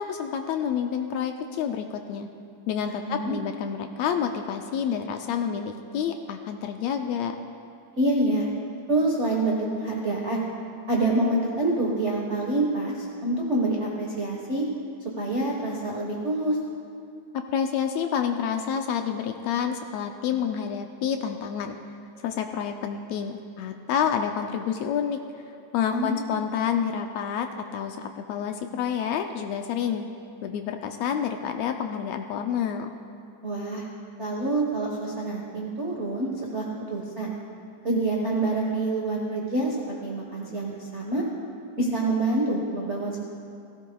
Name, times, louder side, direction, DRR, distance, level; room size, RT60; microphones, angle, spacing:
voice 1, 0.0-2.3 2.7-7.3 17.3-21.7 22.2-25.2 25.7-30.1 30.4-32.9, left 8 dB, 80° left, 5 dB, 1.7 m, -28 dB
voice 2, 2.9-3.3 8.0-8.5 8.9-10.4 10.9-14.6 15.2-16.6 25.9-26.3 33.4-33.8 34.2-36.6 36.9-37.3 37.8-41.2 41.8-43.2, right 2 dB, 60° right, -2 dB, 0.7 m, -26 dB
16.5 x 16.5 x 2.3 m, 2.5 s
omnidirectional pair, 3.4 m